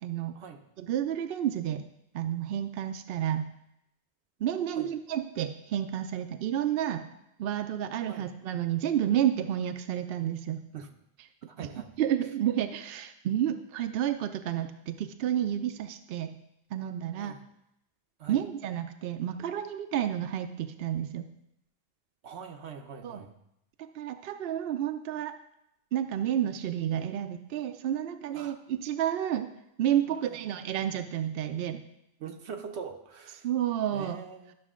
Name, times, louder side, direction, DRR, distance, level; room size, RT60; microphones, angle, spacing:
voice 1, 0.0-0.3 0.8-1.8 2.1-3.5 4.4-7.1 7.4-10.6 11.6-11.7 12.0-16.3 16.7-17.4 18.3-21.3 23.0-23.2 23.9-25.3 25.9-29.5 29.8-31.8 33.4-34.2, right 10 dB, 70° right, 8 dB, 0.7 m, -30 dB
voice 2, 11.5-11.9 17.1-17.5 18.2-18.4 22.2-23.3 28.3-28.6 30.1-30.6 32.2-33.5 33.9-34.5, right 6 dB, 85° right, 4 dB, 1.1 m, -43 dB
12.0 x 6.1 x 3.7 m, 0.82 s
omnidirectional pair, 1.1 m